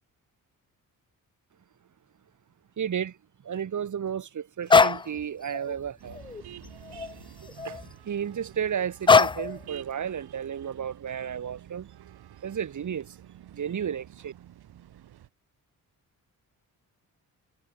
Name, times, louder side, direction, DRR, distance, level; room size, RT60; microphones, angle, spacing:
voice 1, 2.8-3.2 3.4-6.2 7.6-11.9 12.4-13.1 13.5-14.3, right 8 dB, 50° right, 1.5 m, -33 dB
sound 1, 4.7-5.1 5.5-5.7 6.1-7.1 7.5-7.9 9.1-9.6, left 4 dB, 15° left, 0.3 m, -21 dB
sound 2, 6.0-15.3, right 12 dB, 80° right, 3.4 m, -49 dB
cardioid pair, 75°, 37 cm